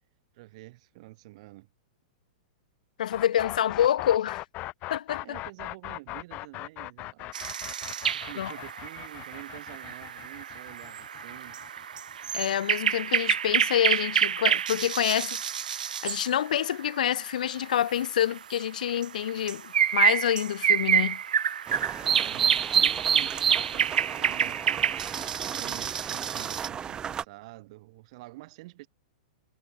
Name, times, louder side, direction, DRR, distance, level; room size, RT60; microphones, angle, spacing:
voice 1, 0.3-1.7 5.2-7.3 8.1-11.6 21.9-24.9 25.4-28.9, right 20 dB, 50° right, 4.7 m, -48 dB
voice 2, 3.0-4.4 4.9-5.4 8.4-8.5 12.3-15.4 15.7-21.2, left 10 dB, 75° left, 1.0 m, -27 dB
sound 1, 3.1-12.9, left 19 dB, 35° left, 3.8 m, -40 dB
sound 2, 7.3-17.0 17.5-17.6 17.9-26.7, right 8 dB, 90° right, 1.2 m, -28 dB
sound 3, 21.7-27.2, right 8 dB, 20° right, 0.5 m, -37 dB
hypercardioid pair, 140°, 4 cm